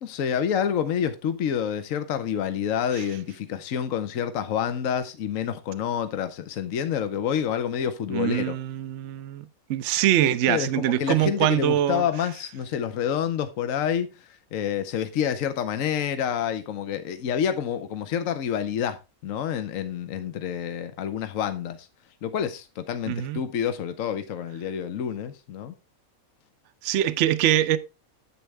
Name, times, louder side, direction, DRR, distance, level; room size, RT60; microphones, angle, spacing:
voice 1, 0.0-8.5 10.5-14.1 14.5-19.0 19.2-21.9 22.2-25.7, left 8 dB, 70° left, 1.2 m, -28 dB
voice 2, 8.1-12.0 23.1-23.4 26.8-27.8, right 12 dB, 60° right, 0.9 m, -24 dB
10.0 x 7.8 x 3.3 m
omnidirectional pair, 1.5 m